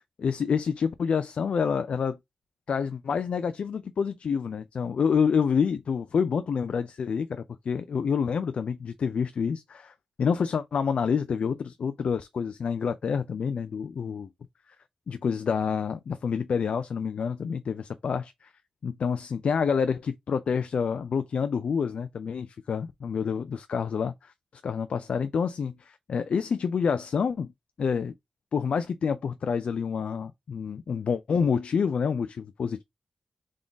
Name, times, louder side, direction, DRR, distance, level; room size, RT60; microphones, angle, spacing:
voice 1, 0.2-2.2 2.7-14.3 15.1-18.5 18.8-24.3 24.6-27.5 27.8-28.1 28.5-32.8, left 6 dB, 75° left, 0.5 m, -28 dB
3.7 x 3.6 x 3.9 m
cardioid pair, 80°, 2 cm